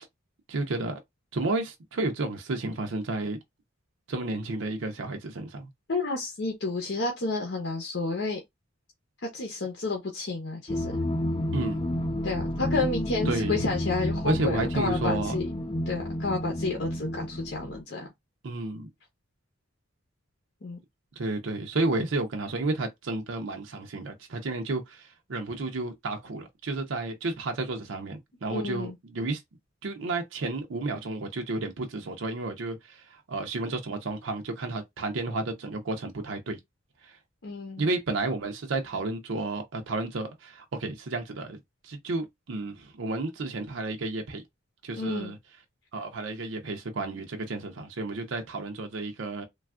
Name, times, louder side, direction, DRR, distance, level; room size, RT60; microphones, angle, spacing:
voice 1, 0.5-1.0 1.3-3.4 4.1-5.7 11.5-11.8 13.3-13.6 14.2-15.4 18.4-18.9 21.2-29.4 29.8-36.6 37.0-37.2 37.8-41.6 41.8-44.4 44.8-45.4 45.9-49.4, right 2 dB, 80° right, 0.6 m, -31 dB
voice 2, 5.9-8.4 9.3-10.9 12.2-15.5 15.9-18.1 20.6-20.8 28.5-29.0 37.4-37.9 45.0-45.3, left 3 dB, 60° left, 0.7 m, -31 dB
sound 1, 10.7-17.8, left 1 dB, 25° left, 0.3 m, -30 dB
3.3 x 2.3 x 2.3 m
head